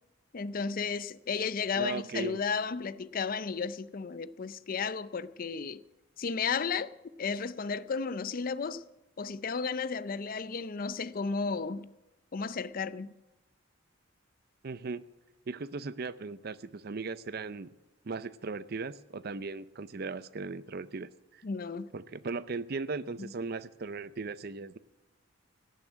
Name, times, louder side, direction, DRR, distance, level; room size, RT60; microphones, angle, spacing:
voice 1, 0.3-5.8 6.2-6.9 7.2-8.8 9.2-11.9 12.3-13.1 21.4-21.9 23.2-23.3, left 5 dB, 45° left, 0.5 m, -33 dB
voice 2, 1.8-2.4 14.6-15.0 15.5-17.7 18.0-21.4 21.9-24.8, right 4 dB, 50° right, 0.5 m, -37 dB
18.0 x 7.2 x 9.1 m
head